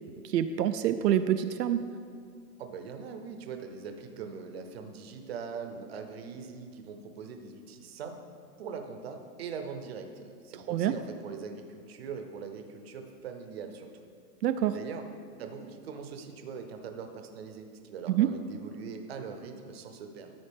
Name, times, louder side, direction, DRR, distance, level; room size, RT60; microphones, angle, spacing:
voice 1, 0.2-1.9 10.7-11.0 14.4-14.7 18.1-18.3, right 11 dB, 80° right, 9 dB, 0.5 m, -26 dB
voice 2, 2.6-8.2 8.6-13.9 14.7-15.0 15.4-20.3, right 5 dB, 40° right, 6 dB, 0.7 m, -41 dB
13.0 x 5.5 x 3.5 m, 2.2 s
hypercardioid pair, 160°, 48 cm